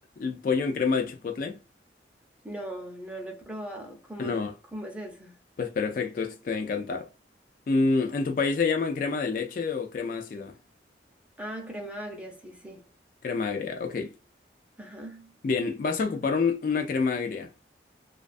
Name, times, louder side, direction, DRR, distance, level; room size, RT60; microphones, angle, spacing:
voice 1, 0.2-1.6 4.2-4.5 5.6-7.1 7.7-10.6 13.2-14.1 15.4-17.5, left 4 dB, 50° left, 0.3 m, -27 dB
voice 2, 2.4-5.4 11.4-12.9 14.8-15.3, right 1 dB, 5° right, 0.5 m, -39 dB
2.3 x 2.3 x 2.4 m
head